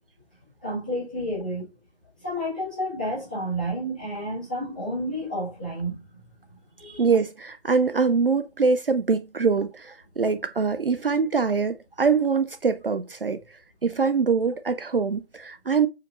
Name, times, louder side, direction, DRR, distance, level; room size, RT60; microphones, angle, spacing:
voice 1, 0.6-1.7 2.2-6.0 6.8-7.1, equal, 10° left, 1.0 m, -30 dB
voice 2, 7.0-13.4 13.8-15.9, right 5 dB, 60° right, 0.5 m, -23 dB
4.9 x 3.0 x 2.4 m
figure-of-eight pair, 170°, 33 cm